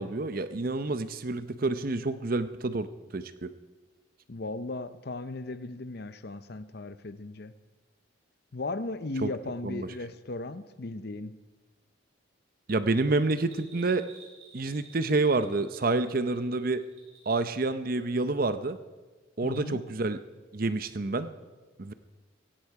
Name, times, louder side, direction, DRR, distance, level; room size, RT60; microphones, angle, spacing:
voice 1, 0.0-2.9 3.1-3.5 9.2-9.3 9.6-9.9 12.7-14.0 14.5-16.8 17.3-18.8 19.4-20.2 20.5-21.3 21.8-21.9, right 3 dB, 45° right, 12 dB, 0.7 m, -28 dB
voice 2, 4.3-7.5 8.5-11.4 19.4-19.8, left 2 dB, 50° left, 13 dB, 0.7 m, -36 dB
Bell, 13.5-17.5 17.8-17.9, right 5 dB, 85° right, 5.4 m, -54 dB
17.0 x 15.5 x 4.8 m, 1.3 s
head